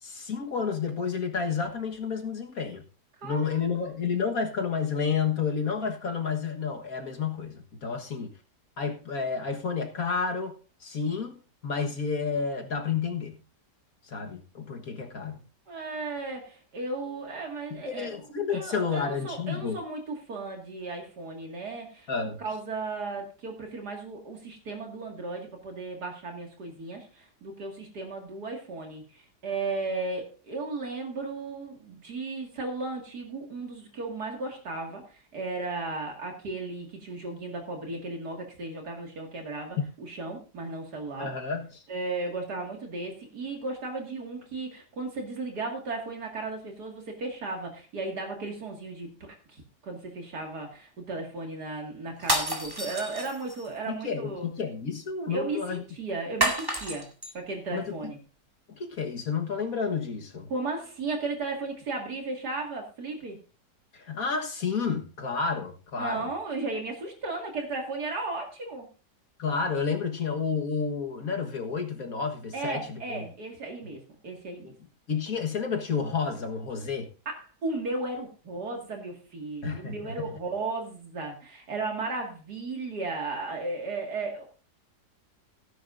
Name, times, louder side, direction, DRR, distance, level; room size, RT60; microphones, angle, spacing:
voice 1, 0.0-2.8 3.2-8.3 8.8-10.5 10.8-13.4 14.1-15.4 17.7-19.8 22.1-22.4 41.2-41.8 53.9-55.8 57.7-58.0 58.7-60.5 63.9-66.3 69.4-73.2 75.1-77.1 79.6-80.3, left 5 dB, 60° left, 1.8 m, -30 dB
voice 2, 3.2-3.9 15.7-18.1 18.5-22.1 22.4-41.3 41.9-54.5 55.3-57.1 57.3-58.2 60.5-63.4 66.0-68.9 72.5-74.7 77.3-84.4, right 3 dB, 70° right, 2.6 m, -35 dB
sound 1, 52.2-53.7 56.4-57.3, right 1 dB, 15° right, 2.1 m, -29 dB
17.5 x 10.5 x 2.6 m
omnidirectional pair, 1.8 m